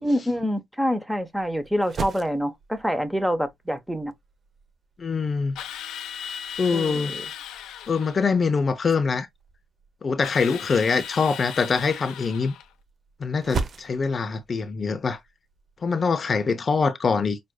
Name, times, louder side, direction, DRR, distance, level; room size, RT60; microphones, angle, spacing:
voice 1, 0.0-4.1 6.7-7.2, equal, 5° right, 0.9 m, -26 dB
sound 1, 1.1-15.9, right 5 dB, 50° right, 0.7 m, -40 dB
voice 2, 5.0-5.6 6.6-7.1 7.9-9.3 10.0-12.5 13.2-15.2 15.8-17.4, left 5 dB, 40° left, 0.6 m, -24 dB
Drill, 5.5-8.2 10.2-12.7, left 8 dB, 85° left, 0.8 m, -37 dB
6.1 x 2.5 x 2.3 m
cardioid pair, 90°, 0 cm